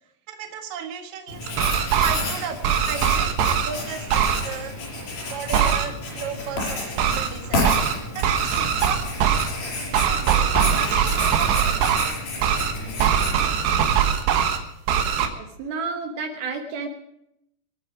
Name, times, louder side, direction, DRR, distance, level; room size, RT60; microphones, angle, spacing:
voice 1, 0.3-1.5 2.0-4.8 5.3-7.8 8.1-9.0 10.1-11.7, right 7 dB, 55° right, 4 dB, 2.6 m, -34 dB
Writing, 1.3-14.1, left 2 dB, 60° left, 7.3 m, -31 dB
sound 1, 1.5-2.2 2.6-3.7 4.1-4.4 5.5-5.9 7.0-7.3 7.6-7.9 8.2-9.5 9.9-12.1 12.4-12.7 13.0-14.6 14.9-15.3, right 8 dB, 90° right, 3.5 m, -21 dB
voice 2, 15.3-16.9, right 4 dB, 70° right, 3 dB, 2.9 m, -31 dB
27.0 x 9.1 x 4.9 m, 0.82 s
omnidirectional pair, 4.7 m